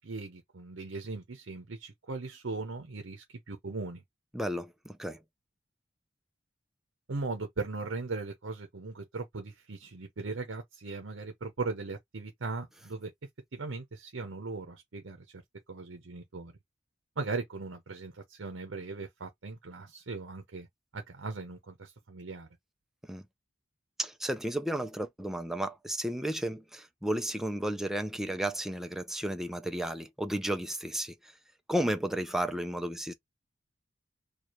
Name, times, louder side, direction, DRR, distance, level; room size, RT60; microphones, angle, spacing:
voice 1, 0.0-4.0 7.1-13.1 13.5-15.4 15.7-16.5 17.2-20.7 20.9-22.5, right 3 dB, 75° right, 0.8 m, -38 dB
voice 2, 4.3-5.2 23.1-23.2 24.0-31.1 31.7-33.1, right 1 dB, ahead, 0.5 m, -33 dB
4.7 x 2.4 x 3.0 m
head